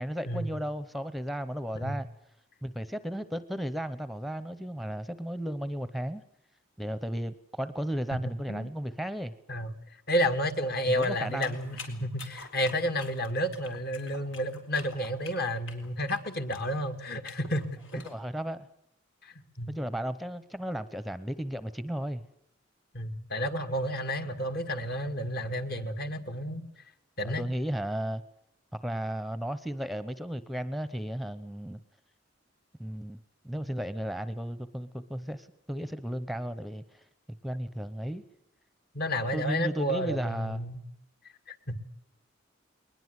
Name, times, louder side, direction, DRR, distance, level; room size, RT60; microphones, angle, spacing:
voice 1, 0.0-2.1 2.6-6.2 6.8-9.3 10.9-11.6 18.0-18.7 19.7-22.2 27.2-28.2 28.7-31.8 32.8-33.2 33.4-37.0 37.4-38.2 39.3-40.7, equal, ahead, 14 dB, 0.8 m, -34 dB
voice 2, 10.1-18.0 19.2-19.7 22.9-26.6 27.2-27.4 38.9-40.8 41.5-41.8, equal, 55° left, 8 dB, 2.1 m, -31 dB
sound 1, 11.0-18.2, left 4 dB, 85° left, 4.1 m, -47 dB
21.5 x 20.5 x 8.1 m, 0.79 s
head